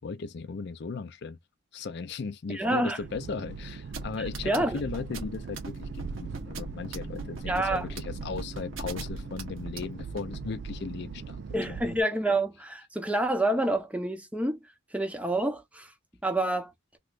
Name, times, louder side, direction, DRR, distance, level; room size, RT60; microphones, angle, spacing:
voice 1, 0.0-1.4 1.7-11.4 11.7-11.8, left 4 dB, 55° left, 0.4 m, -37 dB
voice 2, 2.5-3.0 4.2-4.8 7.5-7.9 11.5-14.6 14.9-15.9 16.2-16.7, right 1 dB, 5° right, 0.6 m, -28 dB
sound 1, 3.0-12.0, right 5 dB, 55° right, 0.3 m, -40 dB
sound 2, 3.9-10.4, right 3 dB, 80° right, 1.2 m, -40 dB
sound 3, 5.7-10.7, left 3 dB, 30° left, 1.0 m, -50 dB
3.1 x 3.0 x 2.4 m
head